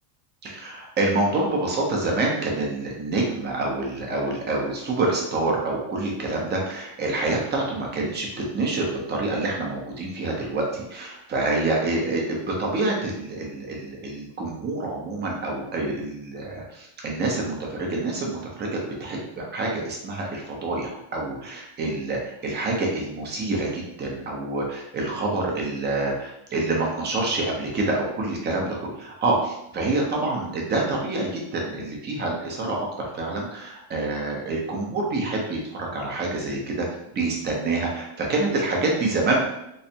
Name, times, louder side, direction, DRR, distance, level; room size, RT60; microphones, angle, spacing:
voice 1, 0.4-36.9 37.1-39.4, right 2 dB, 20° right, -1 dB, 0.6 m, -27 dB
3.4 x 3.1 x 2.8 m, 0.83 s
cardioid pair, 160°, 47 cm